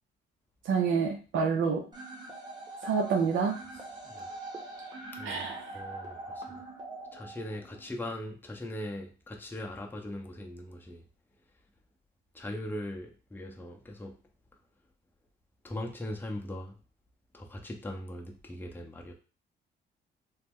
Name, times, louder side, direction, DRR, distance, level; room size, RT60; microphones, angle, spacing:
voice 1, 0.7-1.8 2.8-3.6 5.2-5.6, right 5 dB, 75° right, 2 dB, 0.6 m, -27 dB
sound 1, 1.9-7.9, right 2 dB, 20° right, 1.0 m, -43 dB
voice 2, 5.1-6.4 7.1-11.0 12.3-14.1 15.6-16.8 17.3-19.1, left 1 dB, 10° left, 1 dB, 0.6 m, -40 dB
3.0 x 2.0 x 3.5 m, 0.35 s
cardioid pair, 90°, 20 cm